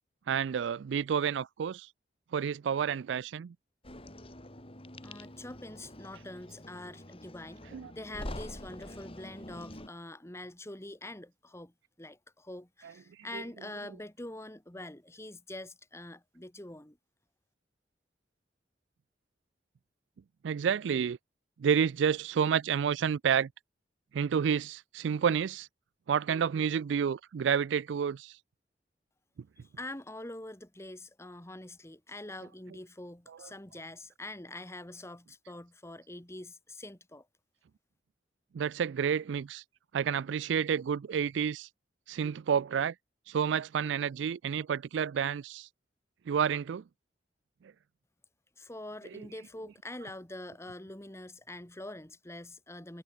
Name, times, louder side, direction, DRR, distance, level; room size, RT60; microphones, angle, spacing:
voice 1, 0.3-1.9 2.3-3.5 7.7-7.9 13.3-13.4 20.4-21.2 21.6-23.5 24.1-25.7 26.1-28.4 38.5-39.6 39.9-41.7 42.1-42.9 43.3-45.7 46.3-46.8, right 7 dB, 80° right, 0.4 m, -29 dB
sound 1, 3.8-9.9, left 1 dB, 30° left, 4.4 m, -46 dB
voice 2, 5.0-7.7 7.9-17.0 29.6-37.3 48.6-53.0, left 1 dB, 15° left, 1.7 m, -45 dB
head